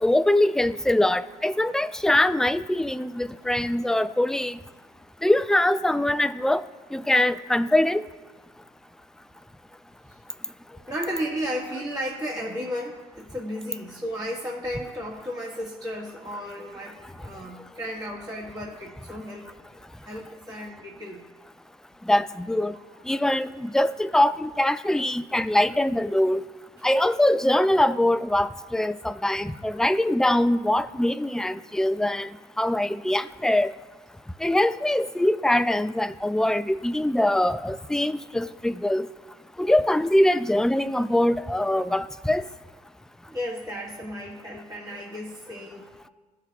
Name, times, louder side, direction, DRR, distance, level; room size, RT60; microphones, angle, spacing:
voice 1, 0.0-4.6 5.2-6.6 6.9-8.0 22.1-22.7 23.1-26.4 26.8-32.3 32.6-33.7 34.4-39.1 39.6-42.4, left 1 dB, 5° left, 13 dB, 0.3 m, -23 dB
voice 2, 10.7-19.6 20.0-21.2 23.1-23.2 29.7-29.8 43.3-46.1, equal, 20° right, -5 dB, 1.6 m, -34 dB
14.0 x 5.8 x 2.3 m, 1.3 s
supercardioid pair, 65°, 19 cm